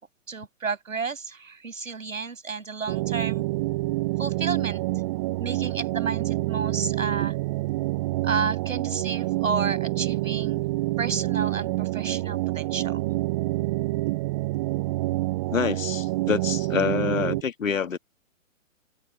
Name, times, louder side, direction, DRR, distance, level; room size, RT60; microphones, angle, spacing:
voice 1, 0.3-3.4 4.2-4.8 5.4-7.4 8.2-10.6 11.0-13.0, right 5 dB, 80° right, 7.1 m, -31 dB
sound 1, 2.9-17.4, right 20 dB, 25° right, 0.6 m, -27 dB
voice 2, 15.5-18.0, left 7 dB, 75° left, 1.9 m, -26 dB
figure-of-eight pair, 125°, 40 cm